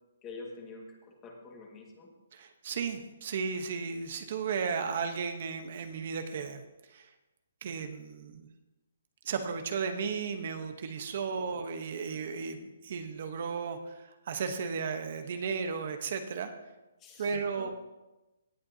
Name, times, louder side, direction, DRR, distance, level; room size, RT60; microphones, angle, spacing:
voice 1, 0.2-2.1 11.4-11.7 17.0-17.7, left 3 dB, 15° left, 0 dB, 1.9 m, -47 dB
voice 2, 2.3-6.6 6.9-7.1 7.6-8.5 9.2-16.5 17.2-17.7, right 5 dB, 50° right, 7 dB, 1.0 m, -34 dB
17.5 x 8.7 x 2.8 m, 1.0 s
hypercardioid pair, 160°, 0 cm